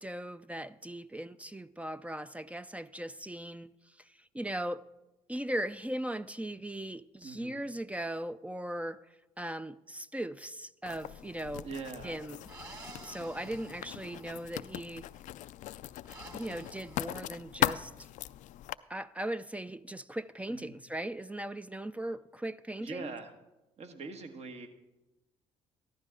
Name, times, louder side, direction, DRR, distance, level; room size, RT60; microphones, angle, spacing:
voice 1, 0.0-3.7 4.3-4.8 5.3-9.0 9.4-11.7 12.0-12.4 13.0-15.0 16.3-17.9 18.9-23.1, right 1 dB, 10° right, 0.4 m, -38 dB
voice 2, 7.2-7.6 11.6-12.2 20.5-20.8 22.8-23.3 23.8-24.7, right 4 dB, 50° right, 1.4 m, -42 dB
sound 1, 10.8-11.4 12.4-14.9 16.1-17.1, right 2 dB, 25° right, 2.3 m, -51 dB
Writing, 10.9-18.7, left 14 dB, 65° left, 0.4 m, -39 dB
14.5 x 12.0 x 3.7 m
hypercardioid pair, 60°, 14 cm